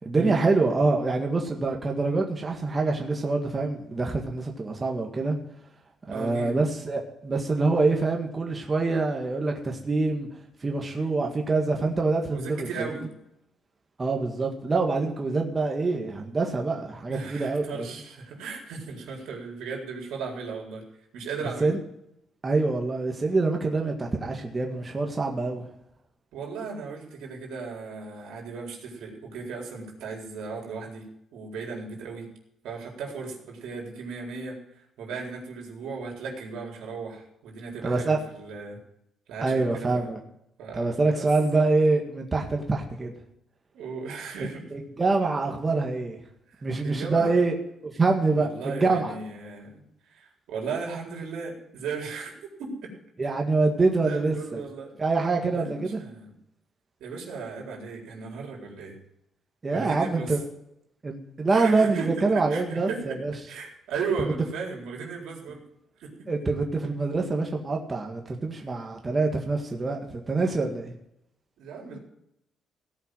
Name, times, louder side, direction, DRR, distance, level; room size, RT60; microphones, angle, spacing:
voice 1, 0.0-5.4 6.1-10.3 10.6-12.9 14.0-17.9 21.6-21.8 22.4-25.7 37.8-38.2 39.4-40.2 40.7-43.1 44.7-46.2 46.6-47.5 47.8-49.1 53.2-54.6 55.0-56.0 59.6-60.4 61.0-63.3 66.3-70.9, right 3 dB, 25° right, 2 dB, 1.8 m, -25 dB
voice 2, 6.1-6.6 12.3-13.1 17.1-20.8 21.1-21.7 26.3-32.3 32.6-38.8 39.3-40.1 40.6-41.3 43.7-44.6 46.5-47.4 48.4-49.8 50.1-52.3 52.6-52.9 53.9-54.9 55.5-56.3 57.0-58.9 59.7-60.4 61.5-63.2 63.5-65.6 66.0-66.3 71.6-72.0, right 4 dB, 85° right, 0 dB, 4.0 m, -36 dB
17.0 x 5.8 x 7.7 m, 0.78 s
cardioid pair, 120°, 0 cm